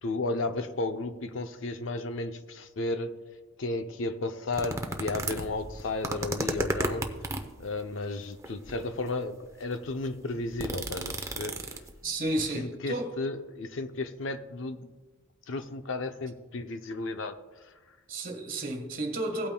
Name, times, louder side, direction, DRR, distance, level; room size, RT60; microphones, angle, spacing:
voice 1, 0.0-3.2 3.6-7.3 7.6-11.8 12.5-14.9 15.5-17.7, left 2 dB, 60° left, 0.6 m, -34 dB
sound 1, 4.5-7.6 8.4-8.9 9.5-9.6 9.8-12.0 12.4-12.5, right 2 dB, 15° right, 0.7 m, -33 dB
voice 2, 12.0-13.1 18.1-19.5, right 1 dB, 40° right, 1.5 m, -32 dB
17.5 x 8.7 x 2.2 m
head